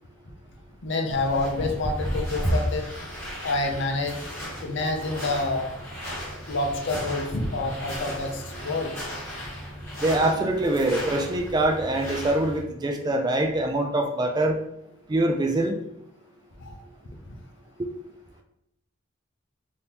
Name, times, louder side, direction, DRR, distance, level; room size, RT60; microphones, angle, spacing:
voice 1, 0.8-2.9 3.4-4.1 4.6-5.7 6.5-8.9 16.6-16.7, left 2 dB, 65° left, 3 dB, 0.6 m, -27 dB
sound 1, 1.1-12.6, equal, 15° left, 1.4 m, -34 dB
voice 2, 10.0-14.6 15.1-15.8 17.8-17.9, right 1 dB, 20° right, 3 dB, 0.3 m, -24 dB
3.6 x 2.7 x 2.8 m, 0.81 s
head